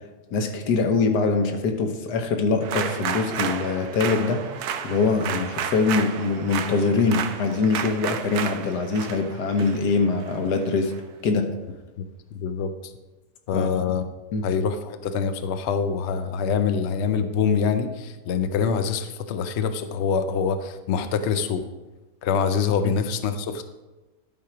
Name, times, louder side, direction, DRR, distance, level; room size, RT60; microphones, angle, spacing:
voice 1, 0.3-10.9 11.2-11.5 13.5-13.7 14.3-14.4 22.8-22.9, left 4 dB, 85° left, 5 dB, 1.5 m, -23 dB
sound 1, 2.6-11.0, right 8 dB, 75° right, 1.1 m, -32 dB
voice 2, 12.3-12.7 13.5-14.0 14.4-21.6 22.2-23.6, left 6 dB, 60° left, 8 dB, 0.7 m, -25 dB
11.0 x 4.5 x 4.9 m, 1.1 s
omnidirectional pair, 1.7 m